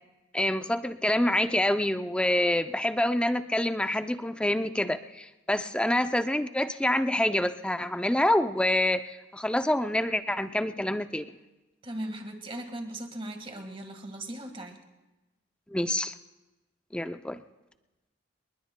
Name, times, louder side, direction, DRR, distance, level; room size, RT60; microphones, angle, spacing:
voice 1, 0.3-11.2 15.7-16.1 16.9-17.4, left 1 dB, 5° left, 9 dB, 0.4 m, -27 dB
voice 2, 11.8-14.8, right 1 dB, 30° right, 5 dB, 1.6 m, -38 dB
28.0 x 21.0 x 2.2 m, 1.1 s
head